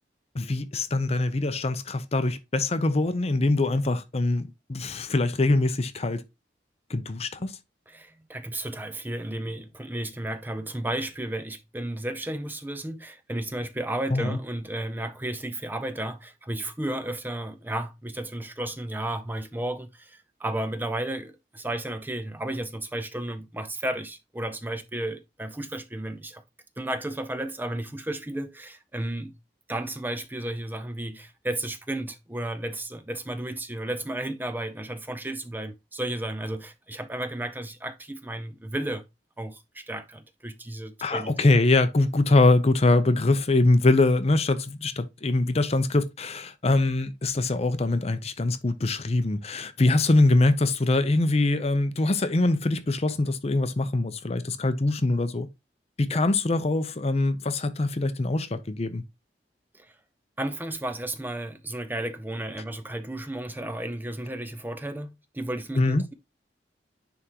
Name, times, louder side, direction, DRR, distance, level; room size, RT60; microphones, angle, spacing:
voice 1, 0.3-6.2 6.9-7.6 14.1-14.4 41.0-55.5 56.0-59.0 65.8-66.0, left 2 dB, 35° left, 0.6 m, -23 dB
voice 2, 7.9-26.4 26.8-29.3 29.7-39.0 39.4-41.3 56.1-56.2 59.7-59.9 60.4-66.1, right 1 dB, 10° right, 0.5 m, -33 dB
9.8 x 3.5 x 2.9 m
head